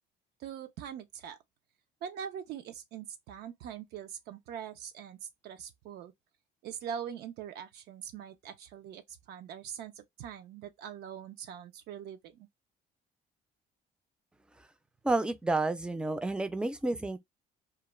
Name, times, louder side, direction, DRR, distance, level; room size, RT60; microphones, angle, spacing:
voice 1, 0.4-1.4 2.0-5.2 5.4-6.1 6.6-12.5, right 8 dB, 75° right, 0.4 m, -42 dB
voice 2, 15.0-17.2, right 2 dB, 5° right, 0.4 m, -30 dB
2.3 x 2.1 x 3.0 m
cardioid pair, 110°, 17 cm